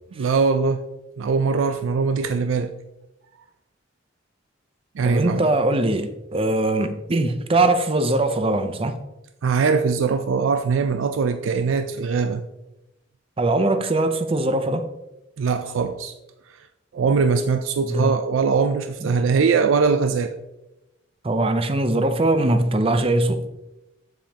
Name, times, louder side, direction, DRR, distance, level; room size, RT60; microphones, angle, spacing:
voice 1, 0.2-0.9 1.2-2.7 5.0-5.5 9.4-12.4 15.4-16.1 16.9-20.4, right 5 dB, 90° right, 0.4 m, -21 dB
voice 2, 5.0-9.0 13.4-14.9 17.8-18.1 19.0-19.2 21.2-23.4, right 2 dB, 30° right, 0.5 m, -21 dB
7.2 x 7.2 x 2.9 m
head